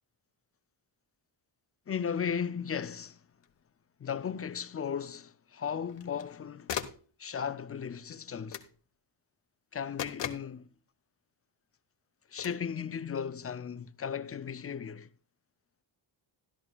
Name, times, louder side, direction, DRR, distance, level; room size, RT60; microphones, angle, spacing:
voice 1, 1.9-3.2 4.0-6.8 7.2-8.6 9.7-10.7 12.3-15.1, left 7 dB, 30° left, 0.4 m, -36 dB
sound 1, 3.4-3.5 5.9-6.3 6.7-7.1 8.5-8.8 10.0-10.5 12.4-12.6, left 9 dB, 65° left, 1.2 m, -38 dB
13.0 x 12.5 x 2.3 m
wide cardioid pair, 145°, 47 cm